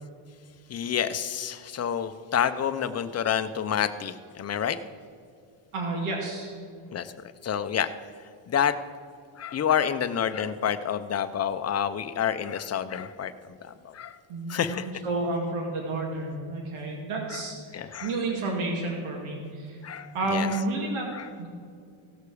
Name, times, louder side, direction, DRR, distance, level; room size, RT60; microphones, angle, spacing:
voice 1, 0.7-4.8 6.9-7.1 7.4-7.9 8.5-8.7 9.4-13.3 13.6-14.2 14.5-14.9 17.3-17.4 17.7-18.1 19.8-20.6 21.1-21.2, left 8 dB, 30° left, 10 dB, 0.7 m, -28 dB
voice 2, 5.7-6.5 14.3-19.8 20.1-21.1 21.4-21.5, right 2 dB, 75° right, -1 dB, 2.4 m, -31 dB
17.0 x 6.7 x 4.9 m, 2.3 s
cardioid pair, 105°, 49 cm